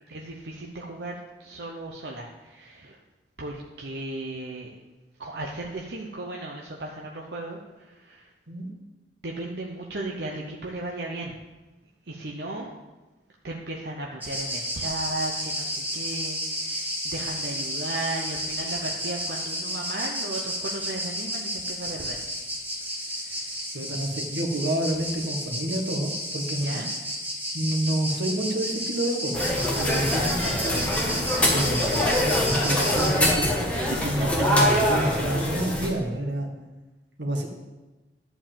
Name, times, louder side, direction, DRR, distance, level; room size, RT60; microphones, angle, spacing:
voice 1, 0.1-3.0 3.4-4.7 5.2-8.3 9.2-11.3 12.1-12.7 13.4-22.2 23.2-23.6 26.6-26.9 33.7-34.1 34.7-35.1, right 2 dB, 65° right, -1 dB, 0.9 m, -36 dB
sound 1, 14.2-33.1, equal, 10° right, 1.8 m, -32 dB
voice 2, 23.7-26.8 27.5-29.5 29.8-30.4 30.6-30.8 31.5-33.6 34.0-36.5 37.2-37.5, right 1 dB, 85° right, 2 dB, 1.7 m, -28 dB
sound 2, 29.3-35.9, left 1 dB, 5° left, 1.5 m, -24 dB
11.0 x 4.8 x 7.5 m, 1.1 s
head